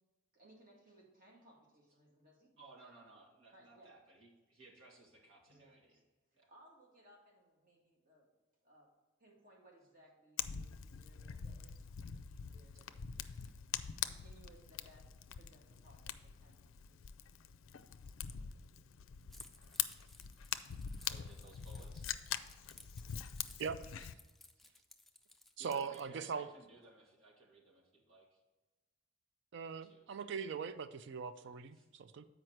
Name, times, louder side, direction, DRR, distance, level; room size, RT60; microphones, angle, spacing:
voice 1, 0.3-2.5 3.5-4.0 5.5-6.0 6.5-8.3 8.6-8.9 9.2-12.9 13.3-13.5 14.0-17.4, right 1 dB, 45° right, 2.0 m, -64 dB
voice 2, 2.6-6.0 6.3-6.5 13.4-13.5 21.0-22.1 25.6-28.4 29.8-30.0 31.4-31.9, right 2 dB, 90° right, 2.0 m, -60 dB
Fire, 10.4-24.1, left 9 dB, 85° left, 0.4 m, -44 dB
Keys jangling, 19.3-26.0, left 2 dB, ahead, 0.4 m, -60 dB
voice 3, 25.6-26.5 29.5-32.2, right 6 dB, 65° right, 0.4 m, -41 dB
7.9 x 5.0 x 4.4 m
head